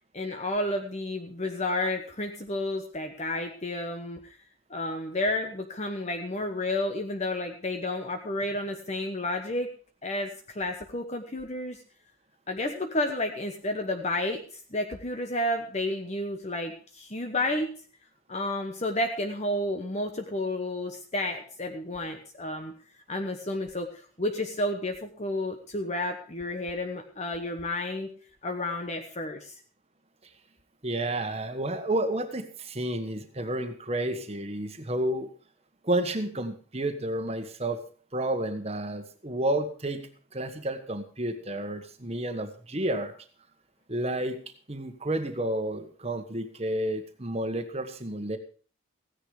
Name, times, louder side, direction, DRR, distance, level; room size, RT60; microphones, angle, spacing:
voice 1, 0.1-4.4 4.7-9.7 10.0-11.8 12.5-17.7 18.3-22.7 23.1-28.1 28.4-29.6, left 1 dB, 30° left, 4 dB, 1.1 m, -31 dB
voice 2, 30.8-35.3 35.8-37.8 38.1-43.1 43.9-44.4 44.7-48.4, right 1 dB, 30° right, 7 dB, 1.4 m, -31 dB
15.5 x 10.0 x 4.9 m, 0.41 s
head